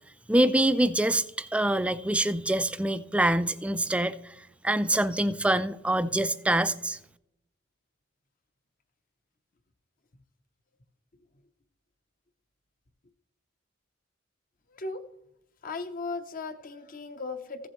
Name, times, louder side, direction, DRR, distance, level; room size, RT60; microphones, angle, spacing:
voice 1, 0.3-4.1 4.6-7.0, right 1 dB, 5° right, 0.3 m, -25 dB
voice 2, 14.7-15.0 15.6-17.7, left 3 dB, 45° left, 0.8 m, -36 dB
15.0 x 7.3 x 3.1 m
head